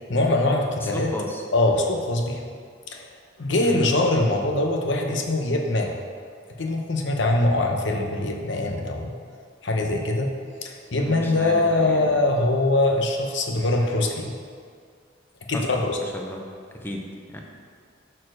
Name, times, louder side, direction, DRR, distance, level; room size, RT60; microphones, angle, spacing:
voice 1, 0.1-1.1 1.5-2.4 2.9-3.1 3.4-5.9 6.6-9.1 9.6-10.3 10.6-14.3 15.5-16.0, left 2 dB, 65° left, 2 dB, 0.8 m, -23 dB
voice 2, 0.8-1.4 3.6-3.7 11.0-12.2 15.5-15.6 16.1-16.4 16.8-17.4, left 1 dB, 10° left, 1 dB, 0.6 m, -34 dB
6.5 x 4.4 x 6.2 m, 2.1 s
head